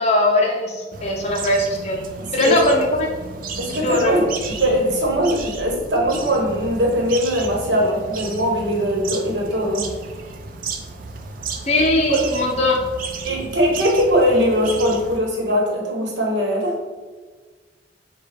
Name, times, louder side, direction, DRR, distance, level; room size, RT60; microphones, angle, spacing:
voice 1, 0.0-2.0 2.3-3.1 3.7-4.2 11.7-12.8, left 1 dB, 35° left, 0 dB, 0.5 m, -20 dB
sound 1, 0.9-15.2, right 4 dB, 50° right, 0.4 m, -33 dB
voice 2, 2.2-2.6 3.6-4.3 4.6-9.9 11.8-12.3 13.2-16.8, equal, 80° right, 0 dB, 1.0 m, -21 dB
6.5 x 2.2 x 3.3 m, 1.4 s
head